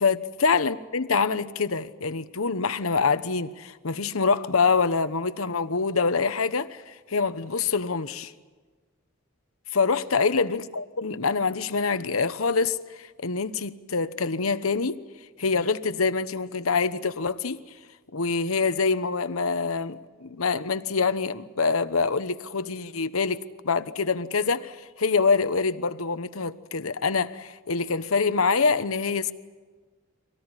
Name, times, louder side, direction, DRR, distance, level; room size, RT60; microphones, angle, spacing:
voice 1, 0.0-8.3 9.7-15.0 15.4-17.6 18.1-29.3, left 4 dB, 85° left, 1.0 m, -25 dB
25.0 x 18.0 x 9.8 m
head